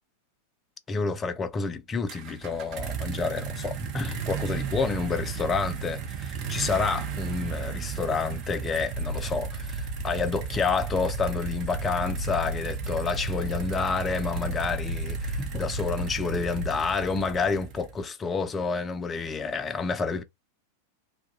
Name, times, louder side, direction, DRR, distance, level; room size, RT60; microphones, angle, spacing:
voice 1, 0.9-20.2, left 4 dB, 20° left, 0.4 m, -29 dB
sound 1, 2.1-18.1, right 8 dB, 40° right, 0.6 m, -35 dB
sound 2, 8.9-16.8, left 2 dB, 80° left, 0.6 m, -36 dB
2.3 x 2.1 x 2.7 m
figure-of-eight pair, 90°, 0 cm